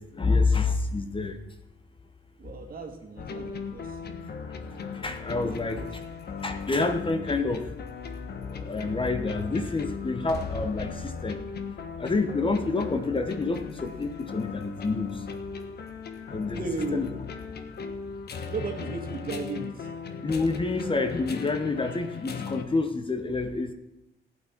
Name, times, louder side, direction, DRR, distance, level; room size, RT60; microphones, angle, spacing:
voice 1, 0.1-1.4 5.0-5.8 6.4-7.7 8.5-11.4 12.0-15.1 16.3-16.6 16.9-17.1 20.2-23.7, left 3 dB, 25° left, 7 dB, 1.0 m, -28 dB
voice 2, 2.4-4.2 5.4-5.9 16.5-17.2 18.5-19.9, right 4 dB, 45° right, 4 dB, 2.0 m, -36 dB
sound 1, 3.2-22.6, left 5 dB, 55° left, 1.2 m, -37 dB
15.0 x 9.1 x 4.5 m, 0.90 s
cardioid pair, 90°, 20 cm